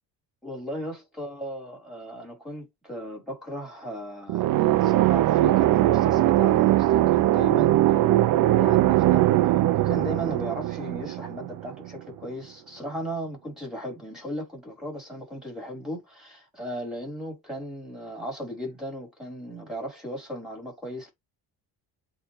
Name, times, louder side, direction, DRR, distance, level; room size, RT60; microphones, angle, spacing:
voice 1, 0.4-9.3 9.7-21.1, equal, ahead, 5.6 m, -36 dB
sound 1, 4.3-11.9, right 15 dB, 55° right, 0.6 m, -21 dB
8.4 x 3.4 x 3.6 m
cardioid pair, 130°, 39 cm